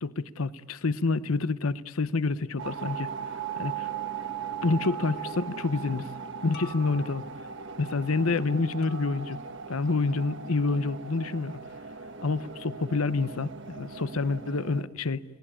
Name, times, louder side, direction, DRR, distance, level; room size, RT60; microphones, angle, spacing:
voice 1, 0.0-3.1 3.6-3.9 4.6-6.1 6.4-7.2 7.8-9.4 9.7-11.6 12.2-15.2, left 3 dB, 75° left, 0.8 m, -28 dB
sound 1, 2.6-14.8, right 6 dB, 55° right, 1.3 m, -38 dB
sound 2, 3.4-3.7 4.8-5.4 6.5-7.4 8.8-9.5, left 3 dB, 50° left, 2.9 m, -50 dB
29.5 x 18.5 x 8.7 m
head